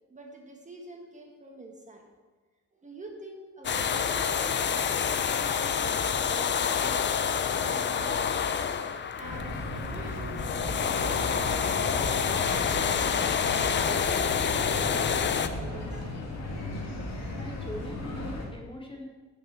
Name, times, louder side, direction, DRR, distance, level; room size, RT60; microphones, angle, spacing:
voice 1, 0.1-2.1 2.8-7.1 7.6-8.6 9.2-10.5 10.8-13.4 13.8-16.2, right 2 dB, 20° right, 1 dB, 1.5 m, -45 dB
sound 1, 3.6-15.5, left 7 dB, 35° left, 0.6 m, -28 dB
sound 2, 9.2-18.5, left 2 dB, 50° left, 2.2 m, -36 dB
voice 2, 17.4-19.0, left 1 dB, 15° left, 0 dB, 1.7 m, -41 dB
8.8 x 6.4 x 7.4 m, 1.3 s
cardioid pair, 120°, 33 cm